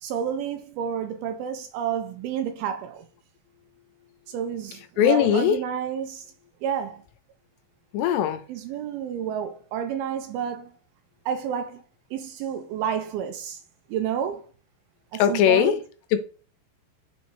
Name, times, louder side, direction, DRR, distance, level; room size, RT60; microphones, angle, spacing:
voice 1, 0.0-3.1 4.3-6.3 6.6-7.0 8.5-10.8 11.3-11.8 12.1-13.6 13.9-14.5 15.1-15.8, right 8 dB, 85° right, 2.2 m, -30 dB
voice 2, 4.7-5.6 7.9-8.4 15.1-15.8 16.1-16.2, left 9 dB, 85° left, 2.9 m, -20 dB
7.0 x 3.1 x 4.4 m
omnidirectional pair, 4.9 m